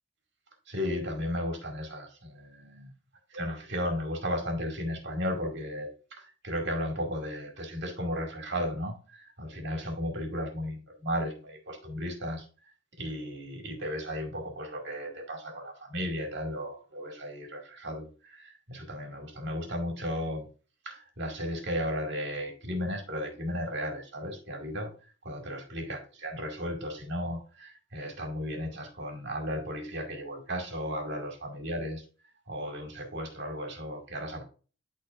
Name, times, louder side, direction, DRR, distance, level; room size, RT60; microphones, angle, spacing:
voice 1, 0.7-2.9 3.3-5.9 6.2-12.4 13.0-20.5 20.9-24.9 25.2-32.0 32.5-34.4, equal, 60° right, 2 dB, 2.2 m, -35 dB
11.5 x 4.1 x 2.5 m, 0.36 s
head